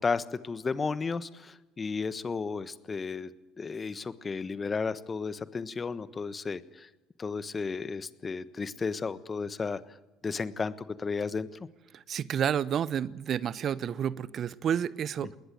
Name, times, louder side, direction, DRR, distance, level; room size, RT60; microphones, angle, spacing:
voice 1, 0.0-3.3 3.6-6.9 7.2-9.8 10.2-11.5 15.2-15.4, left 4 dB, 30° left, 15 dB, 1.3 m, -33 dB
voice 2, 11.9-15.4, right 9 dB, 50° right, 20 dB, 0.8 m, -30 dB
20.5 x 19.5 x 9.3 m, 1.0 s
hypercardioid pair, 60°, 0 cm